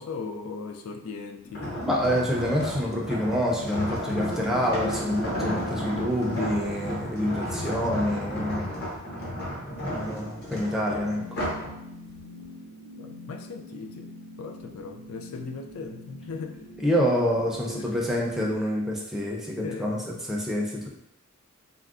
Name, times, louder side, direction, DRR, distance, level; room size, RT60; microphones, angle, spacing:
voice 1, 0.0-1.8 13.0-14.1 14.4-16.6 17.6-17.9 19.6-20.0, left 4 dB, 80° left, 3 dB, 0.4 m, -38 dB
sound 1, 1.5-11.7 12.2-12.4, equal, 50° left, 0.8 m, -33 dB
voice 2, 1.6-8.7 9.8-11.4 16.8-20.9, equal, ahead, -3 dB, 0.4 m, -27 dB
sound 2, 10.4-18.6, left 1 dB, 80° right, 0.6 m, -46 dB
3.5 x 2.0 x 2.4 m, 0.81 s
head